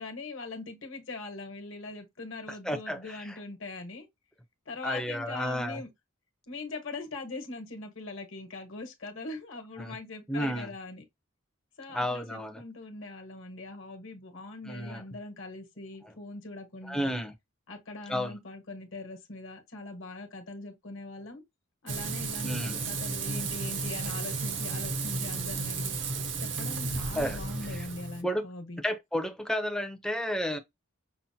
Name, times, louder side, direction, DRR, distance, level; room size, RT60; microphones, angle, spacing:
voice 1, 0.0-4.1 4.7-5.9 6.5-11.0 11.8-17.1 17.7-21.4 21.8-25.9 26.4-28.8, left 2 dB, 65° left, 1.1 m, -41 dB
voice 2, 2.6-3.4 4.8-5.8 9.8-10.0 10.3-10.7 11.9-12.6 14.7-15.0 16.0-16.1 16.8-17.3 18.1-18.4 22.4-22.8 27.1-27.4 27.7-27.9 28.2-28.4 28.8-30.6, equal, 5° left, 0.5 m, -32 dB
Frying (food), 21.9-28.2, right 4 dB, 55° right, 0.6 m, -33 dB
5.7 x 2.0 x 2.7 m
head